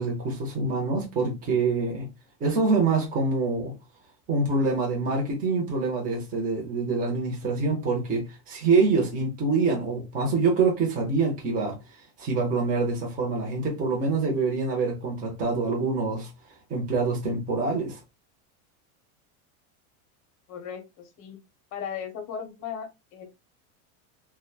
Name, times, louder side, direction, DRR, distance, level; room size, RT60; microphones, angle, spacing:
voice 1, 0.0-2.1 2.4-3.7 4.3-11.8 12.2-16.3 16.7-18.0, right 4 dB, 20° right, 0.7 m, -25 dB
voice 2, 20.5-21.4 21.7-23.3, left 7 dB, 40° left, 0.7 m, -37 dB
2.9 x 2.2 x 2.2 m
supercardioid pair, 145°, 45 cm